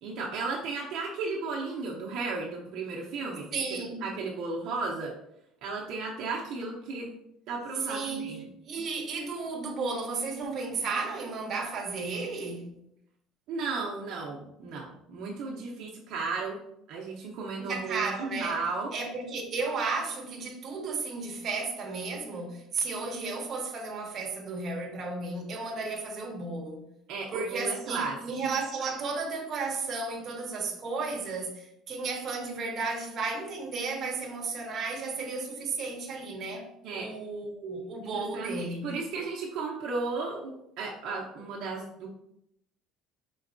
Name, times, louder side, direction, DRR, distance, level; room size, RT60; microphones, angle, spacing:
voice 1, 0.0-5.2 5.6-7.1 7.5-8.5 13.5-16.6 16.9-18.9 27.1-28.2 36.8-37.2 38.0-42.1, right 3 dB, 60° right, 0.7 m, -34 dB
voice 2, 3.5-4.0 7.9-8.3 8.6-12.7 17.6-18.6 18.9-26.8 27.3-36.7 36.9-38.9, right 4 dB, 35° right, 1.0 m, -33 dB
5.2 x 3.9 x 2.6 m
cardioid pair, 150°, 0 cm